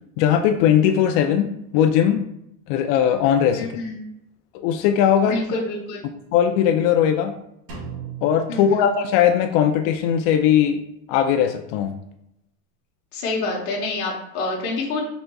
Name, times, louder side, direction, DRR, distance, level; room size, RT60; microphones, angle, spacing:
voice 1, 0.2-1.5 1.7-2.2 2.7-3.7 4.6-5.4 6.3-7.4 8.2-10.8 11.1-11.9, left 9 dB, 60° left, 5 dB, 0.5 m, -19 dB
voice 2, 3.5-4.0 5.2-6.1 8.5-8.9 13.1-15.0, left 3 dB, 45° left, -2 dB, 1.1 m, -27 dB
Drum, 7.7-9.6, right 6 dB, 85° right, 1.6 m, -38 dB
4.5 x 4.0 x 2.3 m, 0.81 s
supercardioid pair, 140°, 42 cm